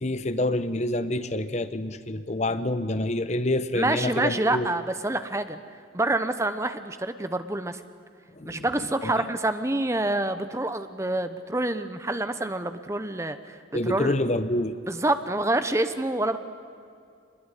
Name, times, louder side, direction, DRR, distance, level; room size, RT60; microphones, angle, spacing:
voice 1, 0.0-4.7 8.4-8.7 9.0-9.3 13.7-14.8, left 1 dB, 35° left, 12 dB, 0.9 m, -27 dB
voice 2, 3.8-5.6 5.9-7.8 8.5-13.6 13.8-14.1 14.9-16.4, right 2 dB, 15° right, 10 dB, 0.9 m, -27 dB
24.0 x 21.0 x 10.0 m, 2.4 s
head